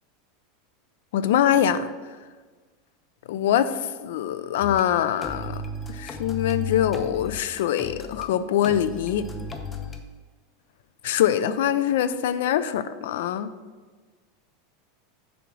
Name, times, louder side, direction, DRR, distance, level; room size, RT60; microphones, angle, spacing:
voice 1, 1.1-1.9 3.3-5.6 5.9-9.3 11.0-13.5, left 10 dB, 70° left, 13 dB, 0.4 m, -23 dB
sound 1, 4.6-4.8 5.2-8.3 8.6-10.0, left 3 dB, 15° left, 0.5 m, -34 dB
6.9 x 3.7 x 6.1 m, 1.4 s
supercardioid pair, 170°, 0 cm